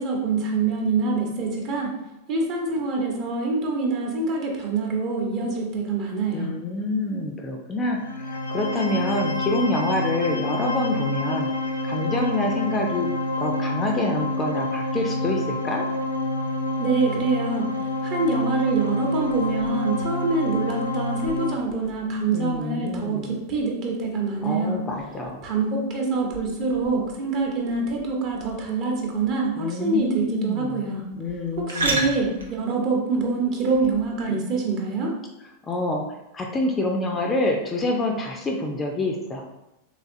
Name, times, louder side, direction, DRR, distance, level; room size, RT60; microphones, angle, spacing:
voice 1, 0.0-1.9 2.3-6.5 16.8-17.7 18.0-24.8 25.4-31.1 31.6-35.1, right 3 dB, 40° right, 0 dB, 0.9 m, -25 dB
voice 2, 6.3-11.5 11.8-13.1 13.4-15.8 22.3-23.3 24.4-25.4 29.6-32.2 35.6-36.0 36.3-39.4, left 2 dB, 20° left, 1 dB, 0.5 m, -27 dB
sound 1, 8.0-21.5, left 2 dB, 80° left, 0.5 m, -27 dB
sound 2, 19.2-34.2, right 2 dB, 70° right, 0.7 m, -37 dB
3.6 x 3.3 x 2.6 m, 0.91 s
figure-of-eight pair, 90°, 0 cm